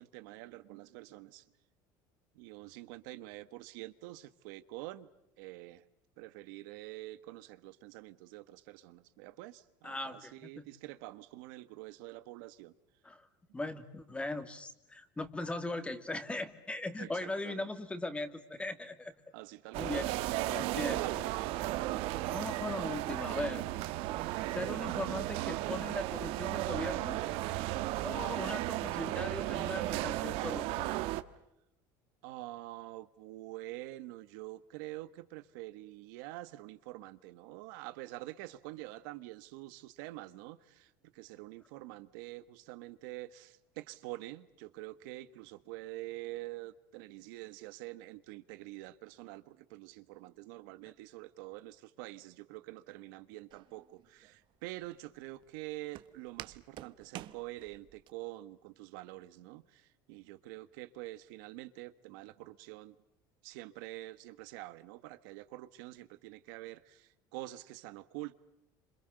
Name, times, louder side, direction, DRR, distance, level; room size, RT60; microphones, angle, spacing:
voice 1, 0.0-1.5 2.3-5.1 5.4-5.8 6.2-12.7 17.0-17.7 19.3-20.0 20.5-22.2 32.2-62.9 63.4-68.3, right 17 dB, 85° right, 1.5 m, -46 dB
voice 2, 9.8-10.7 13.0-13.3 13.5-19.1 19.7-20.1 20.5-21.3 22.3-23.7 24.5-27.2 28.0-30.9, left 2 dB, 10° left, 2.4 m, -39 dB
sound 1, 19.7-31.2, right 16 dB, 70° right, 1.4 m, -35 dB
Walk footsteps, 53.5-58.1, right 13 dB, 50° right, 1.2 m, -50 dB
29.0 x 27.5 x 6.6 m
cardioid pair, 130°, 10 cm